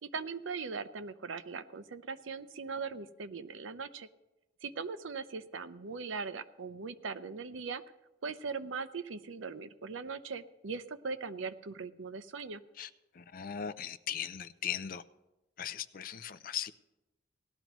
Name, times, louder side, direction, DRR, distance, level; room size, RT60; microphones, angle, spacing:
voice 1, 0.0-4.1 4.6-7.8 8.2-12.6, right 5 dB, 80° right, 0.6 m, -40 dB
voice 2, 13.2-15.0 15.6-16.7, left 9 dB, 45° left, 0.4 m, -38 dB
18.0 x 12.5 x 3.1 m
head